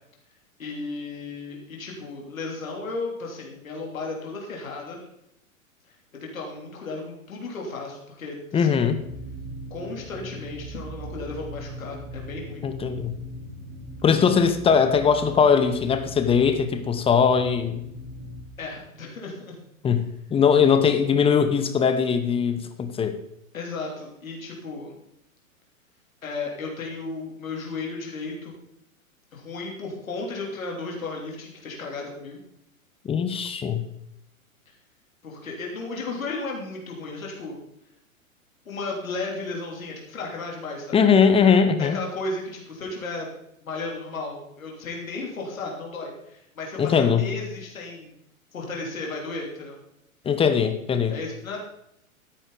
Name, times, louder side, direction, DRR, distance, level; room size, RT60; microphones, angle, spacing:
voice 1, 0.6-5.0 6.1-8.8 9.7-12.6 18.6-19.5 23.5-24.9 26.2-28.6 29.3-32.4 35.2-37.6 38.6-41.0 41.8-43.3 43.6-48.1 48.5-49.8 51.1-51.6, left 3 dB, 70° left, -1 dB, 3.2 m, -34 dB
voice 2, 8.5-9.0 12.6-13.1 14.0-17.8 19.8-23.2 33.0-33.8 40.9-42.0 46.8-47.3 50.2-51.1, left 6 dB, 15° left, 9 dB, 1.0 m, -20 dB
sound 1, 8.8-18.4, equal, 25° right, 5.3 m, -40 dB
13.0 x 10.0 x 4.0 m, 0.79 s
figure-of-eight pair, 105°, 42 cm